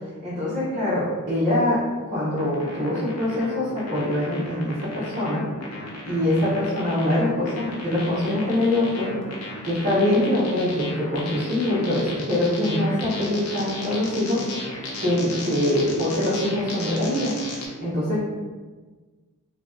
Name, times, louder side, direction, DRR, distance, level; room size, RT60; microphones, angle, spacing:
voice 1, 0.2-5.4 6.0-9.1 9.6-14.4 15.0-17.3 17.8-18.2, left 1 dB, 35° right, -10 dB, 0.9 m, -24 dB
sound 1, 2.4-17.7, left 2 dB, 85° left, 0.8 m, -35 dB
2.9 x 2.7 x 3.6 m, 1.4 s
head